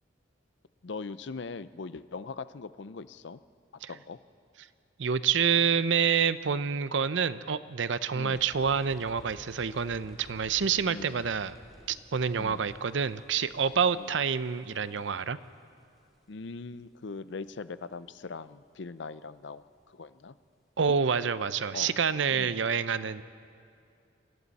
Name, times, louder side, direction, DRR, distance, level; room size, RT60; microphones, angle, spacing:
voice 1, 0.8-3.4 3.9-4.2 8.1-8.5 10.9-11.2 12.4-12.7 13.9-14.1 16.3-20.4 21.7-21.9 22.3-22.6, left 4 dB, 65° left, 14 dB, 0.6 m, -41 dB
voice 2, 5.0-11.6 11.9-15.4 20.8-23.2, right 6 dB, 70° right, 14 dB, 0.6 m, -27 dB
sound 1, 8.3-16.3, equal, ahead, 2.6 m, -54 dB
27.5 x 23.0 x 4.2 m, 2.4 s
head